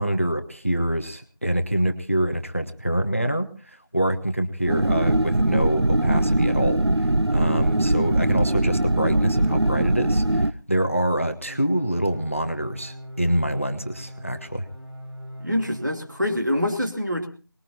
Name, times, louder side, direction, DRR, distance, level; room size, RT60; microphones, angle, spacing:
voice 1, 0.0-14.6, right 1 dB, 30° left, 8 dB, 1.1 m, -26 dB
sound 1, 4.7-10.5, right 1 dB, 85° right, 0.7 m, -21 dB
sound 2, 11.5-16.5, equal, 70° right, 4.7 m, -41 dB
voice 2, 15.4-17.3, left 1 dB, 50° right, 3 dB, 2.8 m, -25 dB
23.5 x 20.5 x 2.8 m, 0.36 s
figure-of-eight pair, 180°, 13 cm